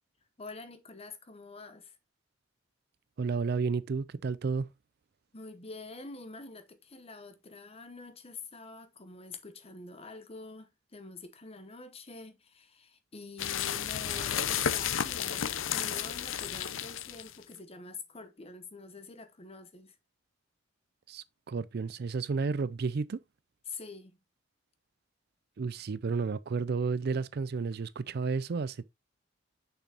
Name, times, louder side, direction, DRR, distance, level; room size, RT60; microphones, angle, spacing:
voice 1, 0.4-2.0 5.3-20.0 23.7-24.2, left 3 dB, 30° left, 1.0 m, -46 dB
voice 2, 3.2-4.7 21.1-23.2 25.6-28.8, right 4 dB, 55° right, 0.4 m, -32 dB
sound 1, 13.4-17.4, left 9 dB, 85° left, 0.6 m, -32 dB
6.7 x 6.1 x 2.9 m
head